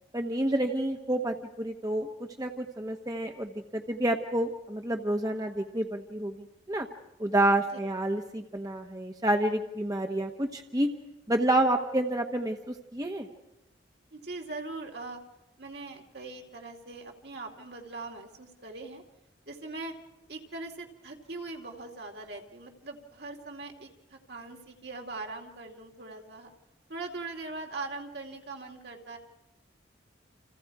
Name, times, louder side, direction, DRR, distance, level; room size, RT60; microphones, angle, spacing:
voice 1, 0.1-2.1 2.4-6.9 7.2-10.9 11.3-13.3, right 1 dB, 20° right, 3 dB, 1.1 m, -29 dB
voice 2, 14.1-15.2 15.6-19.0 19.5-19.9 20.3-26.5 26.9-29.2, right 3 dB, 65° right, 2 dB, 2.5 m, -41 dB
29.5 x 27.0 x 4.8 m, 0.98 s
head